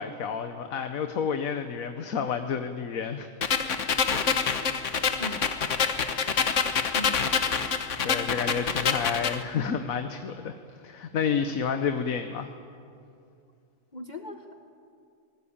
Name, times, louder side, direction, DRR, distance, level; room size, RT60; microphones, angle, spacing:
voice 1, 0.0-3.3 3.9-4.1 8.0-10.5 10.8-12.5, left 6 dB, 85° left, 7 dB, 1.4 m, -30 dB
sound 1, 3.4-9.4, left 6 dB, 65° left, 1.5 m, -26 dB
voice 2, 6.9-7.2 13.9-14.6, left 2 dB, 35° left, 5 dB, 1.2 m, -38 dB
25.5 x 19.5 x 8.7 m, 2.5 s
omnidirectional pair, 1.4 m